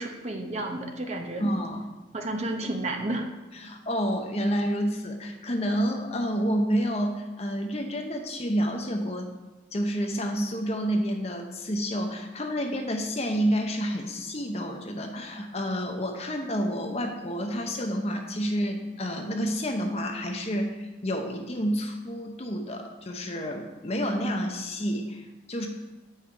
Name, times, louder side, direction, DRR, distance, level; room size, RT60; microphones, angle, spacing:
voice 1, 0.0-1.5 2.1-3.3, right 2 dB, 35° right, 3 dB, 0.8 m, -31 dB
voice 2, 1.4-1.9 3.5-9.3 9.7-25.7, equal, 35° left, 3 dB, 0.8 m, -29 dB
8.1 x 5.6 x 4.6 m, 1.1 s
head